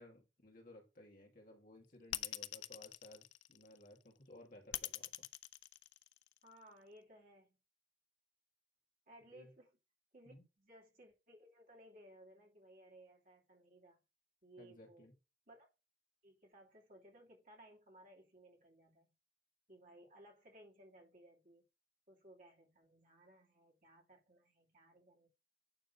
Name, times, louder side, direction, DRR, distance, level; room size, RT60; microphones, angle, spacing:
voice 1, 0.0-5.1 9.3-9.5 10.3-10.4 14.6-15.1, left 1 dB, 50° left, 2.3 m, -58 dB
sound 1, 2.1-3.9 4.7-6.5, left 15 dB, 85° left, 0.4 m, -43 dB
voice 2, 6.4-7.6 9.1-9.8 10.1-14.0 14.4-15.1 15.5-15.7 16.2-19.1 19.7-21.6 22.1-25.3, right 1 dB, 45° right, 2.8 m, -61 dB
9.2 x 3.8 x 5.5 m
head